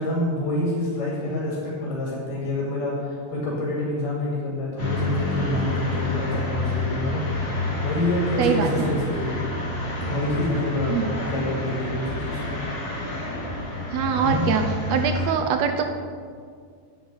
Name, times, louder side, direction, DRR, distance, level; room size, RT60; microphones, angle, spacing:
voice 1, 0.0-9.4 10.1-12.6 14.2-14.5, left 1 dB, 90° left, -4 dB, 4.2 m, -27 dB
sound 1, 4.8-15.3, left 2 dB, 25° left, 2.5 m, -28 dB
voice 2, 8.4-8.9 10.9-11.1 13.9-14.6 14.9-15.9, right 7 dB, 75° right, 6 dB, 1.6 m, -23 dB
9.6 x 9.5 x 6.9 m, 2.1 s
omnidirectional pair, 3.6 m